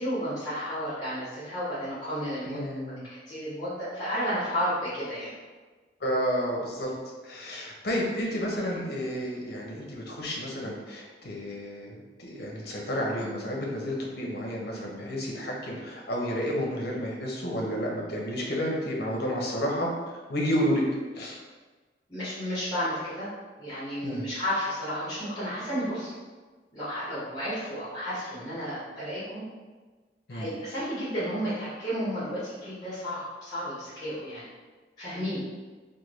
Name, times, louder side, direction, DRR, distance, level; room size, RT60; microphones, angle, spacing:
voice 1, 0.0-2.6 3.0-5.3 22.1-23.3 23.6-26.1 26.7-29.4 30.3-34.4 35.0-35.4, equal, 20° left, -12 dB, 1.1 m, -32 dB
voice 2, 2.5-3.0 6.0-6.9 7.3-19.9 20.3-20.8 21.1-21.4 24.0-24.2 30.3-30.5, equal, 60° left, -2 dB, 0.7 m, -31 dB
3.4 x 2.2 x 3.0 m, 1.3 s
head